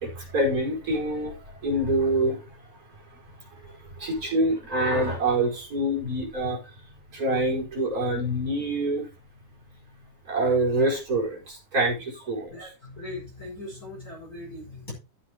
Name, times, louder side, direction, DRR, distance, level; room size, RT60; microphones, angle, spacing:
voice 1, 0.0-1.3 1.6-2.4 4.0-6.6 7.1-9.0 10.3-12.5, right 1 dB, 20° right, 4.9 m, -25 dB
voice 2, 12.5-14.9, left 2 dB, 20° left, 5.0 m, -39 dB
14.0 x 8.1 x 3.0 m
omnidirectional pair, 4.9 m